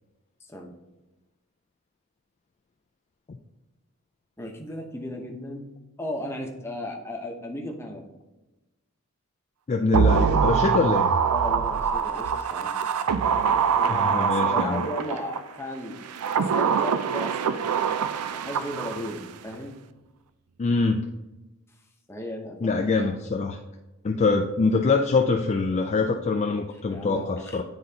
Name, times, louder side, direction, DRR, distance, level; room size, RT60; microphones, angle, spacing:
voice 1, 0.4-0.7 4.4-5.7 6.0-8.1 11.3-12.8 13.8-16.0 16.3-19.7 22.1-22.9 26.8-27.6, left 1 dB, 10° left, 1 dB, 0.8 m, -36 dB
voice 2, 9.7-11.1 13.9-14.8 20.6-21.1 22.6-23.6 24.0-27.6, left 4 dB, 30° left, 3 dB, 0.3 m, -24 dB
sound 1, 9.9-15.4 16.0-19.3 19.5-19.6, right 6 dB, 85° right, 0.4 m, -24 dB
9.6 x 3.9 x 2.8 m, 1.1 s
head